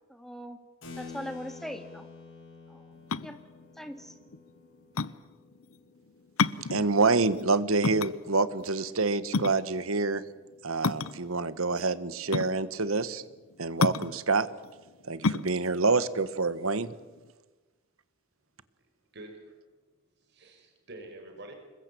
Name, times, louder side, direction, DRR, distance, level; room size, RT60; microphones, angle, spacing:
voice 1, 0.1-0.6 1.0-2.1 2.7-2.9 3.2-3.4 3.8-4.1, equal, ahead, 6 dB, 2.3 m, -40 dB
Keyboard (musical), 0.8-6.8, left 4 dB, 65° left, 7.6 m, -49 dB
sound 1, 2.9-17.3, left 4 dB, 90° left, 0.8 m, -32 dB
voice 2, 6.7-10.2 10.6-13.2 13.6-14.5 15.0-16.9, right 3 dB, 85° right, 15 dB, 1.4 m, -27 dB
voice 3, 19.1-19.6 20.2-21.5, right 2 dB, 55° right, 4 dB, 5.4 m, -47 dB
26.5 x 21.5 x 8.5 m, 1.2 s
head